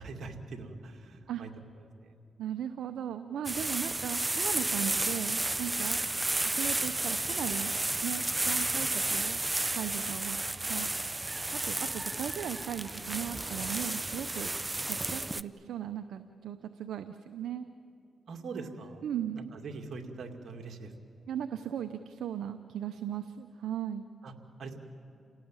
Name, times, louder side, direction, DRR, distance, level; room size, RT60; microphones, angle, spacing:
voice 1, 0.0-1.5 1.8-2.2 18.3-19.0 19.3-21.3 24.2-24.3 24.6-24.8, right 3 dB, 70° right, 3 dB, 2.4 m, -43 dB
voice 2, 2.4-6.0 6.4-7.7 8.0-9.4 9.7-10.4 10.7-10.9 11.5-14.5 14.8-17.6 19.0-19.5 21.3-24.1, right 9 dB, 85° right, 9 dB, 0.7 m, -37 dB
sound 1, 3.4-15.4, right 2 dB, 20° right, 0.6 m, -32 dB
29.0 x 18.0 x 8.9 m, 2.7 s
cardioid pair, 60°, 0 cm